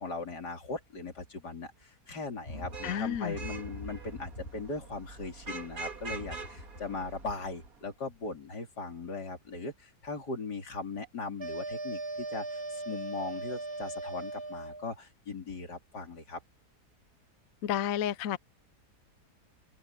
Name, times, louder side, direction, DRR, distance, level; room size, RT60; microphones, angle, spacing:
voice 1, 0.0-16.4, left 3 dB, 90° left, 3.9 m, -39 dB
sound 1, 2.4-5.5 5.9-7.6 8.1-8.3, left 2 dB, 45° left, 4.6 m, -45 dB
Vehicle horn car horn honking / Traffic noise roadway noise, 2.5-7.8, right 4 dB, 60° right, 2.5 m, -44 dB
voice 2, 2.8-3.4 17.6-18.4, left 10 dB, 65° left, 1.0 m, -31 dB
sound 2, 11.4-14.9, right 2 dB, 15° right, 2.0 m, -38 dB
open air
omnidirectional pair, 1.7 m